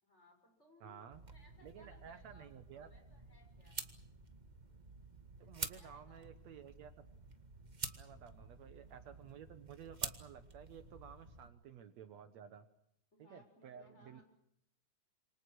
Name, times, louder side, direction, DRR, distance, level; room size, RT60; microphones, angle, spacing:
voice 1, 0.0-3.9 5.5-6.5 8.1-8.5 13.1-14.2, left 1 dB, 20° left, 4 dB, 6.8 m, -66 dB
voice 2, 0.8-1.2 1.6-2.9 5.4-6.9 8.0-12.7 13.2-14.2, right 8 dB, 65° right, 10 dB, 2.3 m, -54 dB
sound 1, 1.1-11.5, right 3 dB, 25° right, 0.9 m, -49 dB
28.0 x 25.0 x 6.3 m, 0.74 s
omnidirectional pair, 3.4 m